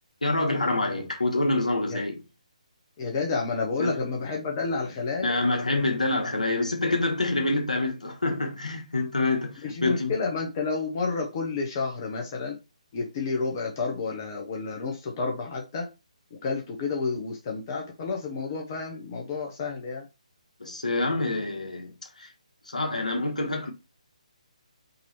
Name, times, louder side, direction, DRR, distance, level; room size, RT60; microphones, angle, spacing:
voice 1, 0.2-2.2 3.8-4.0 5.2-10.1 20.6-21.9 22.2-22.3 22.7-23.7, left 2 dB, 70° left, 1.3 m, -26 dB
voice 2, 3.0-5.4 9.6-12.6 12.9-15.9 16.4-20.0, left 4 dB, 30° left, 1.0 m, -30 dB
3.9 x 3.0 x 4.3 m
figure-of-eight pair, 145°, 4 cm